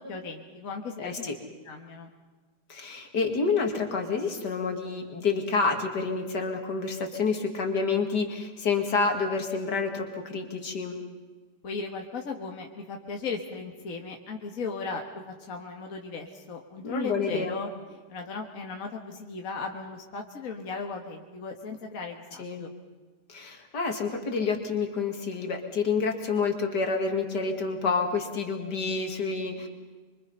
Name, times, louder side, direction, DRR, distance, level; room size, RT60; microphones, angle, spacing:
voice 1, 0.0-1.3 1.7-2.1 11.6-17.7 18.1-22.7, left 4 dB, 55° left, 2 dB, 1.9 m, -37 dB
voice 2, 1.0-1.3 2.7-11.0 16.8-17.5 22.4-22.6 23.3-29.7, left 4 dB, 70° left, 4 dB, 2.8 m, -28 dB
24.5 x 24.5 x 5.6 m, 1.3 s
omnidirectional pair, 1.8 m